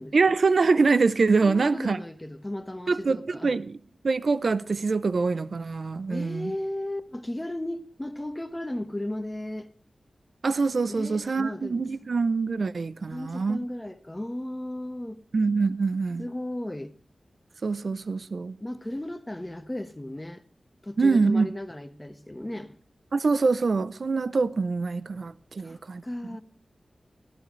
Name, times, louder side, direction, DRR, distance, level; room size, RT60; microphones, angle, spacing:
voice 1, 0.1-2.0 2.9-3.8 4.0-6.5 10.4-13.6 15.3-16.2 17.6-18.6 21.0-21.5 23.1-26.0, right 4 dB, 65° right, 0.5 m, -24 dB
voice 2, 1.4-3.6 6.1-9.7 10.9-12.1 13.1-15.2 16.2-16.9 18.6-20.4 20.8-22.8 25.6-26.4, left 1 dB, 15° left, 1.2 m, -35 dB
18.0 x 14.0 x 3.1 m
cardioid pair, 60°, 0 cm